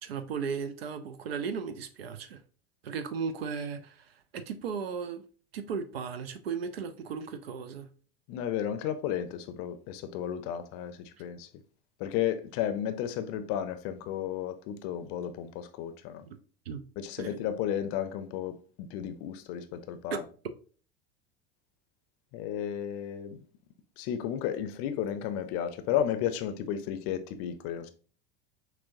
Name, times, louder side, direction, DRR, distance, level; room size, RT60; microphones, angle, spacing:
voice 1, 0.0-2.4 2.8-5.2 5.5-7.9 16.3-16.4 16.7-16.8 17.2-17.3 20.1-20.2, right 6 dB, 80° right, 0.5 m, -36 dB
voice 2, 8.3-11.5 12.0-16.3 17.0-20.2 22.3-23.4 24.0-27.9, left 10 dB, 50° left, 0.5 m, -33 dB
5.8 x 2.1 x 2.6 m
hypercardioid pair, 80°, 29 cm